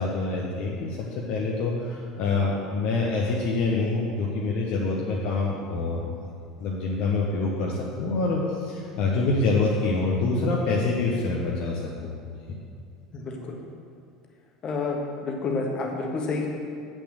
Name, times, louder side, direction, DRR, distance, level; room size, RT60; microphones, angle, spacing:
voice 1, 0.0-6.0 6.6-12.1 12.5-12.6, left 3 dB, 50° left, -3 dB, 1.1 m, -26 dB
voice 2, 13.1-13.6 14.6-16.5, left 3 dB, 35° left, 1 dB, 1.4 m, -29 dB
8.3 x 6.4 x 6.5 m, 2.3 s
figure-of-eight pair, 70°, 3 cm